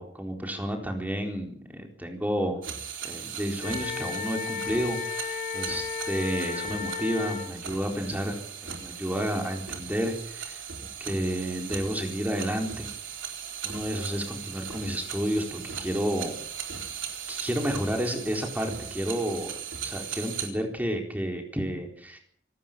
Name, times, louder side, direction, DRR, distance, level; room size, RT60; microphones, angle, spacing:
voice 1, 0.0-2.6 3.0-10.6 11.0-12.9 13.6-16.4 17.3-19.5 19.8-22.2, equal, 10° right, 2 dB, 4.1 m, -31 dB
sound 1, 2.6-20.5, right 8 dB, 80° right, 4.1 m, -38 dB
Wind instrument woodwind instrument, 3.6-7.5, left 7 dB, 45° left, 2.9 m, -34 dB
27.0 x 13.0 x 7.5 m, 0.66 s
head